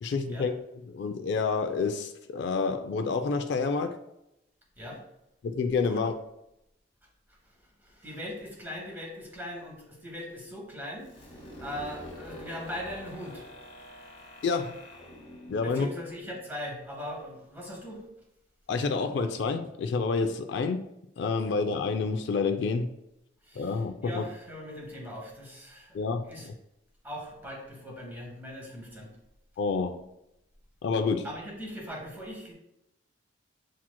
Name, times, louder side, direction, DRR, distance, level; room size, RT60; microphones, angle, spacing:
voice 1, 0.0-0.5 0.9-4.0 5.4-6.1 14.4-14.8 15.5-15.9 18.7-20.8 21.2-22.9 23.6-24.3 25.9-26.5 29.6-30.0 30.8-31.3, left 4 dB, 60° left, 0.3 m, -28 dB
voice 2, 7.3-13.4 15.6-18.0 23.4-26.5 27.0-29.1 31.2-32.5, left 1 dB, 10° right, 1.1 m, -40 dB
sound 1, 11.0-16.7, left 1 dB, 30° left, 1.1 m, -46 dB
7.3 x 2.9 x 2.2 m
head